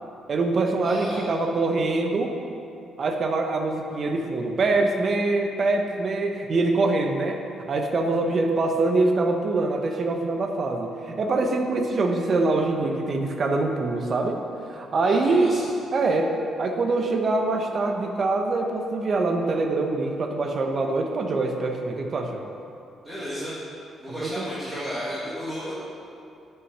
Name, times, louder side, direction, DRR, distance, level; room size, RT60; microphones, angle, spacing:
voice 1, 0.3-2.4 3.0-7.4 7.7-14.4 14.7-15.6 15.9-16.3 16.6-22.4 24.2-24.5, right 3 dB, 45° right, 3 dB, 1.0 m, -24 dB
voice 2, 0.8-1.2 15.0-15.6 23.0-23.6 24.0-25.7, equal, 15° right, -11 dB, 2.2 m, -33 dB
9.4 x 5.7 x 5.6 m, 2.6 s
cardioid pair, 120°, 0 cm